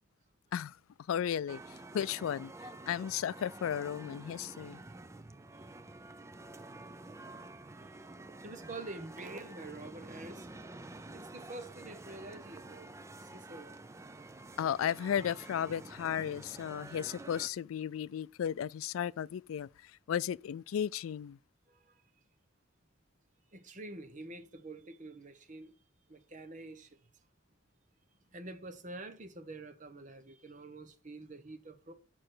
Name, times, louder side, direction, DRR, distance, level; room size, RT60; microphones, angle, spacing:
voice 1, 1.1-2.5 2.9-4.8 14.6-21.4, left 9 dB, 85° left, 0.3 m, -35 dB
sound 1, 1.5-17.5, right 2 dB, 15° right, 0.5 m, -49 dB
voice 2, 8.4-10.5 11.1-13.8 21.7-22.0 23.5-25.7 26.1-27.0 28.3-31.9, right 2 dB, 40° right, 1.1 m, -47 dB
6.7 x 6.1 x 6.1 m
head